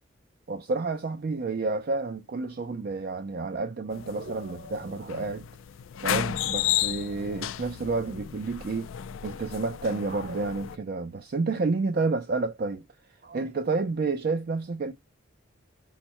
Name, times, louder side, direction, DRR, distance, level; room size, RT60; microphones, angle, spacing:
voice 1, 0.5-5.5 6.0-8.9 9.2-12.8 13.2-14.9, right 3 dB, 50° right, 0.4 m, -30 dB
sound 1, 3.9-10.8, left 11 dB, 75° left, 0.3 m, -33 dB
5.6 x 2.1 x 4.4 m
head